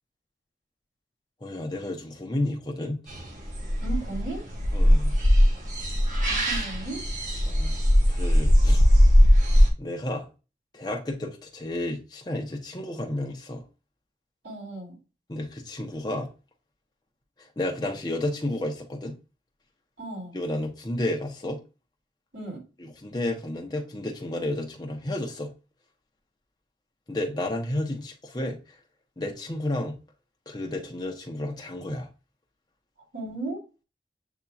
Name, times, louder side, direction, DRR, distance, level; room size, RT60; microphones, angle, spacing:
voice 1, 1.4-3.0 4.7-5.2 6.4-6.6 7.4-7.8 8.1-8.9 9.8-10.3 10.7-13.6 15.3-16.3 17.4-19.2 20.3-21.6 22.8-25.5 27.1-28.6 29.2-30.0 30.5-32.1, left 1 dB, 25° left, 0.8 m, -31 dB
sound 1, 3.1-9.7, equal, 45° right, 1.0 m, -20 dB
voice 2, 3.8-4.4 6.2-7.0 14.4-14.9 20.0-20.4 22.3-22.6 33.1-33.6, right 3 dB, 85° right, 2.8 m, -35 dB
8.0 x 2.8 x 2.4 m
head